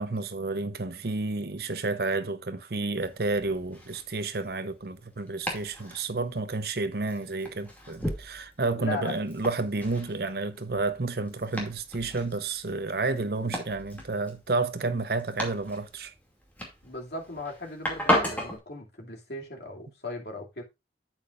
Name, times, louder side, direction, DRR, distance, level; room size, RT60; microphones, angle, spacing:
voice 1, 0.0-16.1, right 3 dB, 60° right, 0.8 m, -30 dB
Domestic sounds home sounds, 3.0-18.6, left 1 dB, 10° left, 2.4 m, -36 dB
voice 2, 8.8-9.2 16.8-20.6, left 2 dB, 65° left, 2.6 m, -37 dB
8.9 x 8.7 x 2.5 m
head